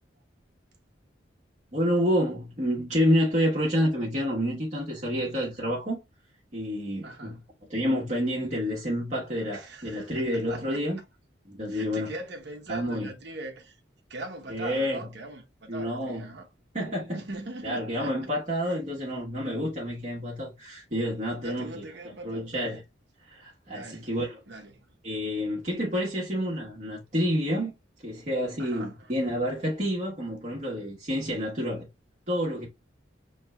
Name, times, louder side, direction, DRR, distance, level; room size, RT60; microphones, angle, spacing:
voice 1, 1.7-6.0 6.5-7.4 7.7-11.0 11.5-12.1 12.7-13.1 14.5-15.0 15.7-16.2 16.7-17.2 17.6-21.8 22.2-22.8 23.3-24.4 25.0-27.7 28.0-31.9 32.3-32.7, equal, 40° right, 1.3 m, -28 dB
voice 2, 7.0-7.4 9.5-11.0 11.7-13.8 14.1-16.5 17.1-18.2 18.6-18.8 21.4-22.5 23.7-24.1 24.5-24.9 28.6-29.1, right 2 dB, 60° right, 0.9 m, -41 dB
6.3 x 3.3 x 2.2 m
head